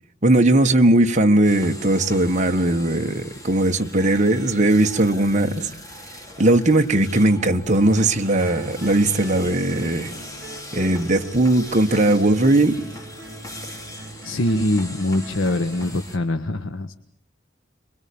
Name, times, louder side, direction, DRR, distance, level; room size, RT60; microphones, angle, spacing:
voice 1, 0.2-5.7 6.4-10.1 10.7-12.8, right 1 dB, 40° right, 1.6 m, -18 dB
sound 1, 1.4-16.2, left 1 dB, 20° left, 3.7 m, -40 dB
sound 2, 8.0-16.0, right 2 dB, 10° right, 4.6 m, -41 dB
voice 2, 14.2-16.9, left 1 dB, 85° left, 1.3 m, -23 dB
27.5 x 23.0 x 8.7 m
head